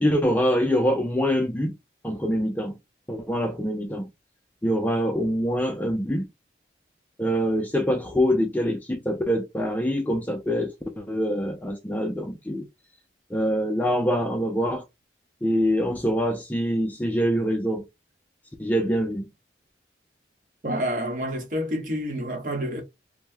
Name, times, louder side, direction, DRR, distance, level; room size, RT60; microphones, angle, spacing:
voice 1, 0.0-1.7 2.0-2.8 3.1-4.1 4.6-6.3 7.2-12.7 13.3-14.8 15.4-17.9 18.6-19.3, equal, 10° left, 0.3 m, -24 dB
voice 2, 20.6-22.8, equal, 45° right, 0.9 m, -28 dB
2.6 x 2.1 x 3.2 m
head